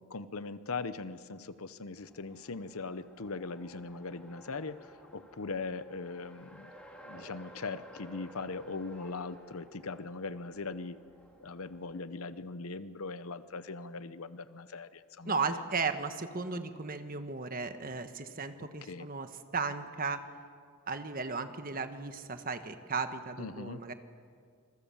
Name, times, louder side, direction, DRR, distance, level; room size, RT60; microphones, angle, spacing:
voice 1, 0.0-6.7 7.0-11.0 11.4-15.6 18.6-19.1 23.4-23.8, left 3 dB, 80° left, 13 dB, 0.9 m, -40 dB
Race car auto racing, 2.0-12.0, equal, 5° left, 2.9 m, -54 dB
voice 2, 15.2-20.2 20.9-23.9, right 4 dB, 40° right, 8 dB, 1.4 m, -35 dB
27.0 x 23.0 x 7.2 m, 2.1 s
head